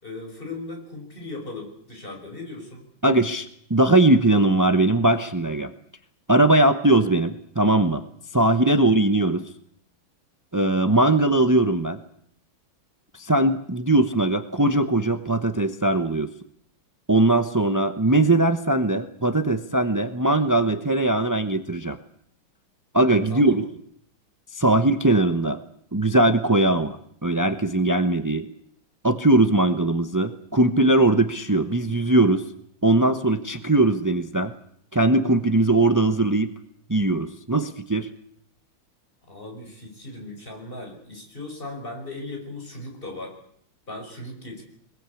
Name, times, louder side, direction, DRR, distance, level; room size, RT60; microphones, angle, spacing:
voice 1, 0.0-2.9 8.8-9.0 23.3-23.6 39.3-43.4 43.9-44.6, left 2 dB, 25° left, 1 dB, 5.9 m, -37 dB
voice 2, 3.0-5.7 6.3-8.0 8.3-9.4 10.5-12.0 13.1-16.3 17.1-22.0 22.9-23.7 24.5-25.6 25.9-27.0 27.2-28.5 29.0-32.4 32.8-34.5 34.9-36.5 36.9-38.1, right 2 dB, 25° right, 9 dB, 0.4 m, -20 dB
23.0 x 21.5 x 8.5 m, 0.67 s
omnidirectional pair, 2.2 m